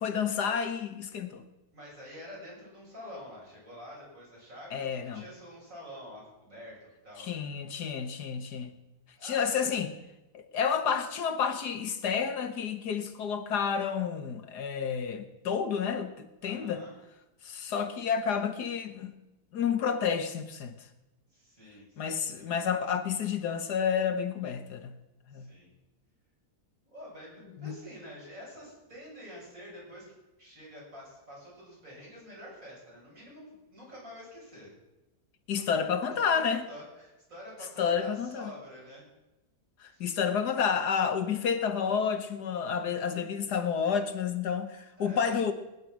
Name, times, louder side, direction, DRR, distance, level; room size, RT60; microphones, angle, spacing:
voice 1, 0.0-1.4 4.7-5.2 7.2-8.8 9.2-9.9 10.3-16.8 17.4-19.1 19.5-20.7 22.0-25.0 25.3-25.5 27.6-27.7 35.5-36.7 37.8-38.5 39.8-45.5, left 7 dB, 85° left, 9 dB, 1.9 m, -30 dB
voice 2, 1.7-7.5 9.2-9.7 16.4-17.0 21.3-22.5 25.3-25.7 26.8-34.7 36.7-39.1 39.8-40.1 45.0-45.3, equal, 55° right, -5 dB, 7.8 m, -47 dB
20.5 x 11.0 x 6.3 m, 1.0 s
omnidirectional pair, 1.7 m